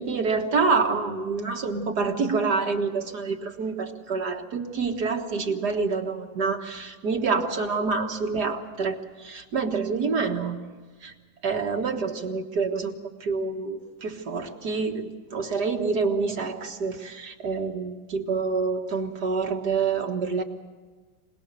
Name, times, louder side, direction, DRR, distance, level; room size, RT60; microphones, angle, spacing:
voice 1, 0.0-10.6 11.0-11.1 11.4-20.4, right 4 dB, 60° right, 3 dB, 2.0 m, -27 dB
25.5 x 19.5 x 6.8 m, 1.4 s
omnidirectional pair, 2.1 m